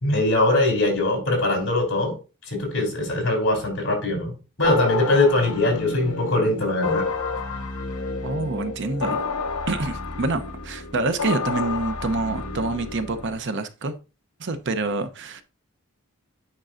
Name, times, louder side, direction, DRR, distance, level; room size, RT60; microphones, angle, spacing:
voice 1, 0.0-2.1 2.5-4.3 4.6-7.0, left 2 dB, 60° left, 3.4 m, -21 dB
sound 1, 4.6-13.4, left 4 dB, 85° left, 0.9 m, -30 dB
voice 2, 8.2-9.2 9.7-13.9 14.4-15.4, right 3 dB, 55° right, 0.7 m, -27 dB
8.9 x 5.3 x 2.5 m
head